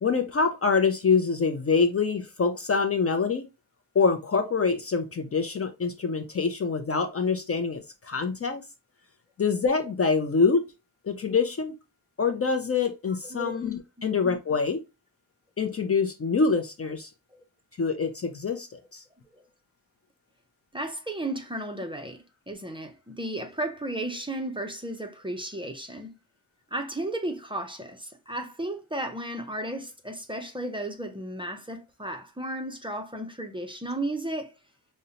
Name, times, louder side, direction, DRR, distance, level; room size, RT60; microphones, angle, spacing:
voice 1, 0.0-3.5 3.9-8.6 9.4-10.7 11.0-11.8 12.2-14.8 15.6-17.1 17.8-19.0, left 5 dB, 40° left, 0.4 m, -25 dB
voice 2, 13.2-13.6 14.0-14.1 17.3-17.4 19.3-19.4 20.7-26.2 26.7-34.6, right 1 dB, 15° right, 0.5 m, -34 dB
5.1 x 2.1 x 2.7 m
wide cardioid pair, 145°, 39 cm